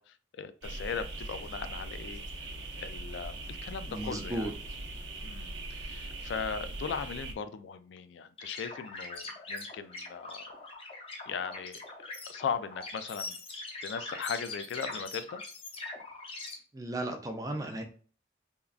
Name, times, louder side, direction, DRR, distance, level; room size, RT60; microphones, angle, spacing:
voice 1, 0.0-2.2 2.8-4.5 5.2-10.5 11.2-11.8 12.3-13.4 13.8-15.4, left 6 dB, 90° left, 0.3 m, -38 dB
sound 1, 0.6-7.3, right 2 dB, 85° right, 0.7 m, -41 dB
voice 2, 3.9-4.5 16.7-17.8, right 1 dB, 20° right, 0.4 m, -35 dB
sound 2, 8.4-16.5, left 3 dB, 30° left, 0.6 m, -42 dB
3.6 x 2.2 x 2.4 m
head